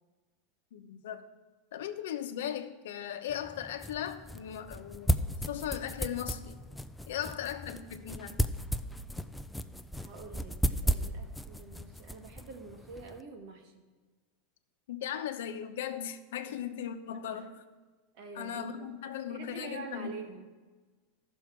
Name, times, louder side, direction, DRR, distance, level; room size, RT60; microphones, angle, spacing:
voice 1, 0.7-1.3 1.7-6.6 7.1-8.4 14.9-17.6 18.3-20.1, left 9 dB, 80° left, 8 dB, 0.8 m, -38 dB
sound 1, 3.3-13.2, equal, 5° left, 0.4 m, -35 dB
voice 2, 10.0-13.9 16.5-16.6 17.3-17.5 18.1-18.9 19.3-20.4, right 3 dB, 60° right, 3 dB, 1.8 m, -46 dB
14.0 x 6.3 x 4.6 m, 1.3 s
supercardioid pair, 140°, 0 cm